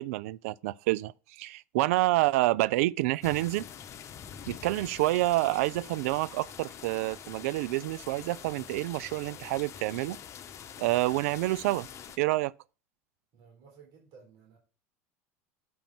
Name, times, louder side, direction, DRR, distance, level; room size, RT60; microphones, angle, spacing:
voice 1, 0.0-3.7 4.5-10.2 10.8-11.9 12.2-12.5, right 18 dB, 75° right, 0.3 m, -28 dB
sound 1, 3.2-12.2, left 8 dB, 40° left, 1.0 m, -45 dB
voice 2, 13.3-14.6, right 5 dB, 60° right, 3.8 m, -55 dB
7.7 x 5.2 x 5.9 m
hypercardioid pair, 100°, 8 cm